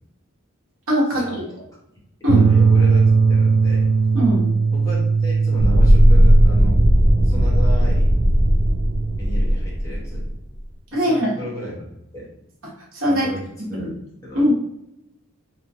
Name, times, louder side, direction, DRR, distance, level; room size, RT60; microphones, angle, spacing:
voice 1, 0.9-1.2 2.2-2.5 4.1-4.5 10.9-11.3 12.9-13.3 13.6-13.9 14.3-14.5, equal, 65° right, -4 dB, 1.0 m, -20 dB
sound 1, 2.3-9.2, right 5 dB, 80° right, 0.4 m, -19 dB
voice 2, 2.4-3.9 4.7-6.8 7.2-8.0 9.2-10.3 10.9-12.3 13.1-13.9 14.2-14.4, left 1 dB, 15° left, -6 dB, 0.8 m, -34 dB
sound 2, 5.6-10.4, equal, 40° right, 0.7 m, -16 dB
3.1 x 2.2 x 2.6 m, 0.83 s
head